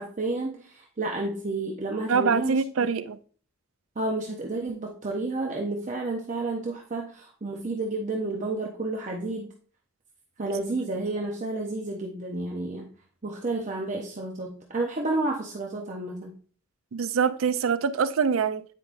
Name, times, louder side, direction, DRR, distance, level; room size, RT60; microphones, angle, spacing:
voice 1, 0.0-2.6 4.0-9.5 10.4-12.9 13.2-16.3, right 2 dB, 40° right, 0.7 m, -31 dB
voice 2, 2.1-3.2 16.9-18.6, right 6 dB, 90° right, 0.5 m, -24 dB
9.1 x 5.0 x 2.5 m
head